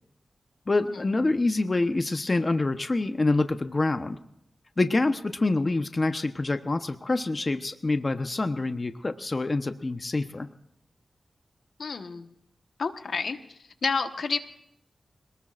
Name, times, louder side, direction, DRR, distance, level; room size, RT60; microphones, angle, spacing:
voice 1, 0.7-4.2 4.8-10.5, left 2 dB, 40° left, 8 dB, 1.0 m, -26 dB
voice 2, 11.8-12.3 12.8-13.4 13.8-14.4, left 4 dB, 75° left, 7 dB, 1.3 m, -29 dB
25.5 x 19.5 x 2.5 m, 0.77 s
cardioid pair, 65°, 0 cm